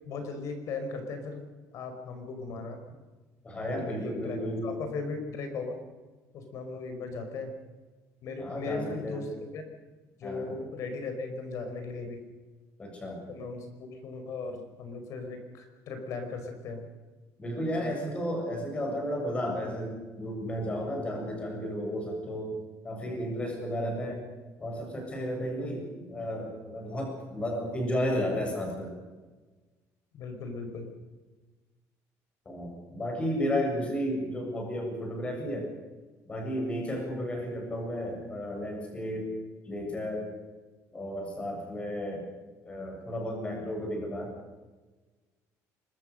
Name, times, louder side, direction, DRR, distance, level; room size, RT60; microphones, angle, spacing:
voice 1, 0.0-1.4 1.7-2.8 3.7-5.8 6.3-7.5 8.2-9.6 10.2-12.2 13.3-16.9 25.3-25.8 30.1-30.9, left 3 dB, 55° left, 6 dB, 5.2 m, -37 dB
voice 2, 3.4-4.7 8.4-9.2 10.2-10.5 12.8-13.2 17.4-22.6 22.8-24.3 24.6-28.9 32.5-35.7 36.3-39.3 39.7-40.3 40.9-42.3 42.6-44.3, equal, 20° left, 1 dB, 7.4 m, -33 dB
25.5 x 22.0 x 6.7 m, 1.3 s
cardioid pair, 165°, 6 cm